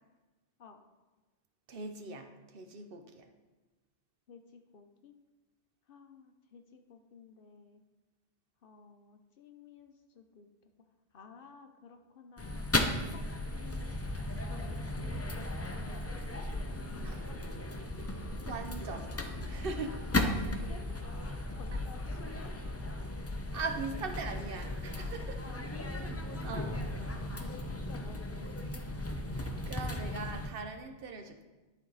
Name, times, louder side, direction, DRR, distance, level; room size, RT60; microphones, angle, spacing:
voice 1, 1.7-3.2 17.0-17.3 18.4-20.1 23.5-25.4 26.4-26.7 29.3-31.4, right 4 dB, 60° right, 6 dB, 0.8 m, -41 dB
voice 2, 4.3-5.1 5.9-7.8 8.6-10.5 11.1-12.7 13.1-13.2 13.5-14.0 14.4-16.2 16.6-17.7 20.5-21.0 21.5-22.5 25.4-26.6 26.9-27.1 27.4-28.8, left 5 dB, 60° left, 6 dB, 0.8 m, -53 dB
sound 1, 12.4-30.5, left 1 dB, 20° left, 0.4 m, -36 dB
11.5 x 4.5 x 3.9 m, 1.2 s
omnidirectional pair, 1.1 m